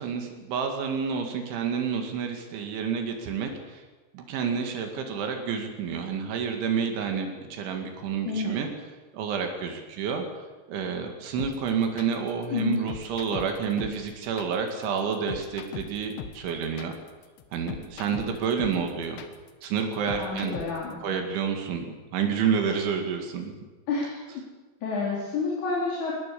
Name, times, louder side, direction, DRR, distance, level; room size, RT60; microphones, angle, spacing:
voice 1, 0.0-3.8 4.1-8.7 9.1-10.3 10.7-16.9 17.5-19.2 19.6-20.6 21.0-21.9 22.1-23.5, right 6 dB, 80° right, 4 dB, 4.5 m, -29 dB
voice 2, 8.2-8.6 12.5-12.8 20.1-21.0 23.9-24.2 24.8-26.1, left 3 dB, 40° left, -4 dB, 4.9 m, -29 dB
sound 1, 11.4-20.9, left 9 dB, 70° left, 3.6 m, -40 dB
21.5 x 20.0 x 8.5 m, 1.3 s
omnidirectional pair, 5.3 m